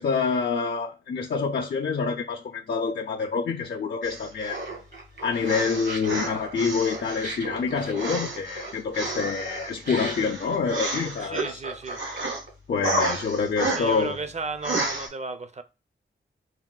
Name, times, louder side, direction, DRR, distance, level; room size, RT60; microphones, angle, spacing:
voice 1, 0.0-4.6 5.2-11.6 12.7-14.2, left 5 dB, 55° left, 0.4 m, -27 dB
sound 1, 4.0-4.7 5.4-7.4 7.9-11.5 11.8-12.4 12.8-14.1 14.6-15.1, right 2 dB, 80° right, 0.9 m, -31 dB
Laughter, 4.4-12.5, right 3 dB, 60° right, 1.3 m, -37 dB
voice 2, 11.2-12.0 13.8-15.6, right 4 dB, 35° right, 0.5 m, -34 dB
3.9 x 2.1 x 2.3 m
cardioid pair, 55°, 20 cm